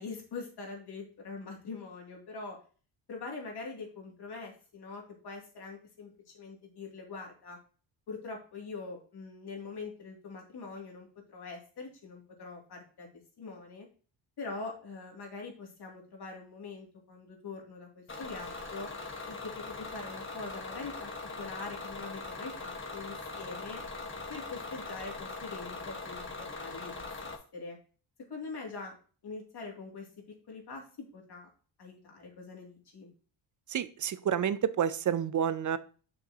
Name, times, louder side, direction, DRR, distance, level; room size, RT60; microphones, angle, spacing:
voice 1, 0.0-2.6 3.1-7.6 8.1-13.1 13.4-13.9 14.4-18.9 19.3-23.8 24.3-27.8 28.3-29.0 29.2-31.5 31.8-33.1, left 3 dB, 55° left, 0 dB, 2.7 m, -43 dB
Bus / Engine, 18.1-27.4, left 3 dB, 25° left, 1.5 m, -41 dB
voice 2, 33.7-35.8, right 9 dB, 40° right, 15 dB, 0.6 m, -29 dB
7.0 x 6.2 x 2.9 m, 0.39 s
cardioid pair, 95°, 46 cm